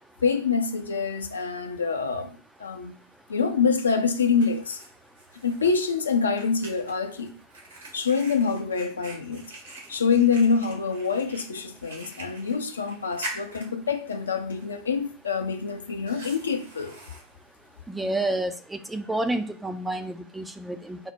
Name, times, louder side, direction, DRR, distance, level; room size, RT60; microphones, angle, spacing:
voice 1, 0.2-3.0 3.3-4.8 5.4-7.3 7.9-9.4 9.9-17.0, left 5 dB, 70° left, 0.5 m, -26 dB
Fire, 3.7-18.6, right 2 dB, 70° right, 1.5 m, -45 dB
voice 2, 17.9-21.0, right 1 dB, 5° right, 0.4 m, -29 dB
4.5 x 2.1 x 4.3 m
figure-of-eight pair, 90°, 0 cm